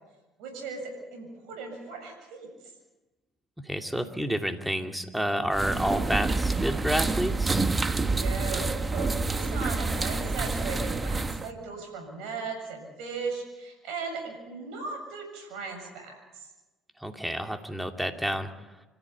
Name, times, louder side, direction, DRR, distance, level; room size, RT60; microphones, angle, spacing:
voice 1, 0.4-2.7 7.8-16.5, right 4 dB, 75° right, 3 dB, 7.3 m, -37 dB
voice 2, 3.6-7.7 17.0-18.5, equal, 5° right, 5 dB, 2.7 m, -29 dB
sound 1, 5.5-11.5, right 3 dB, 25° right, 1.4 m, -28 dB
27.0 x 14.5 x 8.6 m, 1.1 s
hypercardioid pair, 70°, 0 cm